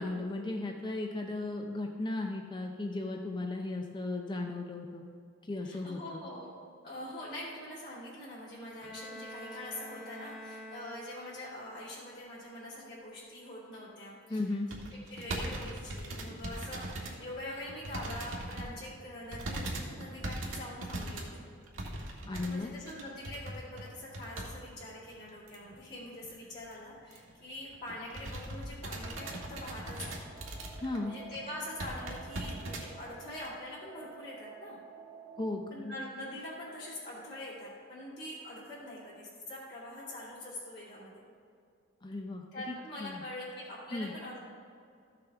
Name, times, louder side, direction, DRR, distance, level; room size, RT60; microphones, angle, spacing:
voice 1, 0.0-5.0 5.4-6.2 14.3-14.7 22.3-22.7 30.8-31.1 35.4-35.9 42.0-42.7 43.0-43.2 43.9-44.1, left 2 dB, 25° left, 2 dB, 0.5 m, -36 dB
voice 2, 5.6-6.5 6.8-14.5 15.1-21.4 22.4-30.2 31.0-34.8 35.7-41.2 42.5-44.4, left 1 dB, 55° left, -9 dB, 2.5 m, -44 dB
Bowed string instrument, 8.8-11.5, equal, ahead, 1.1 m, -47 dB
sound 1, 14.7-17.2 17.6-18.7 19.3-24.6 24.8-24.9 25.5-25.8 26.2-26.3 26.6-26.7 27.1-27.3 27.7-31.0 31.3-31.4 31.8-32.9 33.5-33.6, right 1 dB, 85° right, 1.5 m, -40 dB
sound 2, 29.0-35.5, right 5 dB, 20° right, 0.9 m, -52 dB
13.5 x 6.7 x 3.5 m, 2.4 s
head